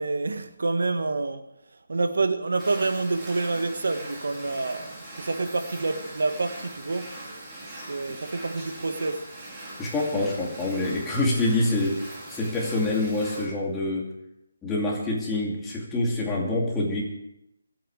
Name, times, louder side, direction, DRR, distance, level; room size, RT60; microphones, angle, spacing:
voice 1, 0.0-7.1 7.9-9.2, right 3 dB, 80° right, 1.5 m, -28 dB
sound 1, 2.6-13.5, right 1 dB, 15° right, 2.9 m, -41 dB
voice 2, 9.8-12.0 12.3-14.1 14.6-17.0, left 2 dB, 10° left, 2.5 m, -26 dB
22.0 x 8.9 x 4.9 m
hypercardioid pair, 170°, 0 cm